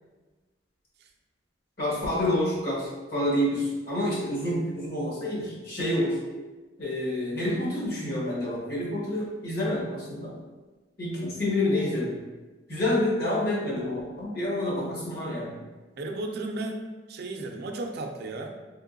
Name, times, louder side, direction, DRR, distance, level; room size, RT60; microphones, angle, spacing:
voice 1, 1.8-6.2 6.8-10.3 11.0-12.1 12.7-15.5, left 1 dB, 60° left, -7 dB, 1.4 m, -28 dB
voice 2, 16.0-16.8 17.1-18.5, right 2 dB, 60° right, 3 dB, 0.4 m, -34 dB
3.6 x 2.9 x 2.6 m, 1.2 s
head